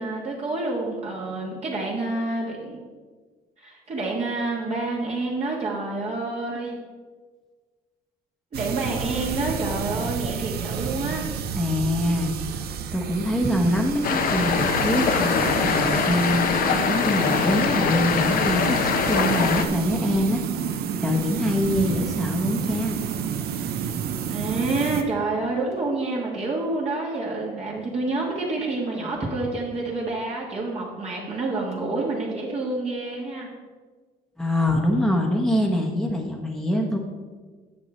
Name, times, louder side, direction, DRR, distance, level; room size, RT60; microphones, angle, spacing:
voice 1, 0.0-2.8 3.6-6.7 8.5-11.2 24.3-33.5, right 2 dB, 40° right, -4 dB, 1.7 m, -28 dB
sound 1, 8.5-25.0, right 7 dB, 70° right, 0.7 m, -30 dB
voice 2, 11.5-20.4 21.0-23.0 34.4-37.0, left 1 dB, ahead, 1 dB, 1.1 m, -24 dB
sound 2, 14.0-19.7, left 6 dB, 55° left, 0.8 m, -23 dB
9.5 x 6.5 x 4.4 m, 1.4 s
cardioid pair, 110°, 17 cm